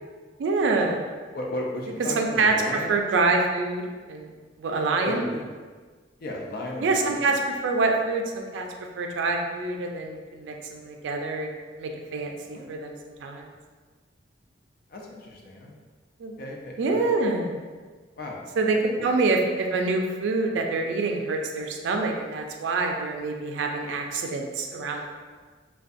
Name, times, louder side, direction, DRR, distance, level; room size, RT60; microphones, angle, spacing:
voice 1, 0.4-1.0 2.2-2.5 2.9-4.3 4.6-5.2 6.8-8.7 9.0-11.5 11.8-12.9 13.2-13.5 16.2-16.3 16.8-17.5 18.6-18.8 19.0-25.1, right 3 dB, 80° right, 3 dB, 0.3 m, -26 dB
voice 2, 1.3-2.9 5.0-5.5 6.2-7.4 12.5-12.9 14.9-15.8 16.4-17.1 18.2-18.4 18.7-19.1, left 1 dB, 55° left, -1 dB, 0.4 m, -35 dB
2.5 x 2.2 x 2.4 m, 1.5 s
head